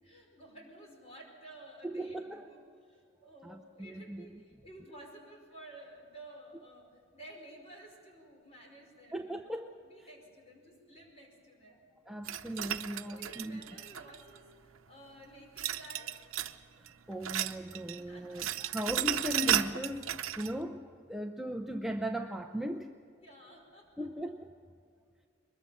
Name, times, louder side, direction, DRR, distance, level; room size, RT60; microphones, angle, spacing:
voice 1, 0.0-9.6 9.8-11.9 13.1-16.2 17.9-19.0 23.2-24.3, right 1 dB, 30° left, 1 dB, 5.2 m, -53 dB
voice 2, 1.8-2.5 3.4-4.3 9.1-9.7 12.1-13.6 16.8-22.9 24.0-24.5, equal, ahead, 3 dB, 0.6 m, -38 dB
sound 1, 12.2-14.4 15.6-16.6 16.9-18.0 18.2-20.5, right 10 dB, 80° right, 0.8 m, -34 dB
22.5 x 21.5 x 7.2 m, 2.3 s
head